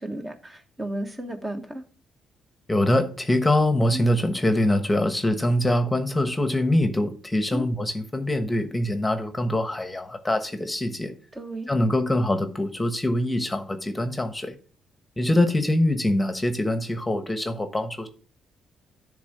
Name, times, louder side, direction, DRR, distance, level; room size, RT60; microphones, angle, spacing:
voice 1, 0.0-1.8 3.9-4.1 7.5-7.7 11.3-11.7, right 1 dB, 20° right, 1.1 m, -33 dB
voice 2, 2.7-11.1 11.7-14.5 15.2-18.1, left 1 dB, 15° left, 1.1 m, -24 dB
9.8 x 3.6 x 6.6 m
cardioid pair, 90°, 0 cm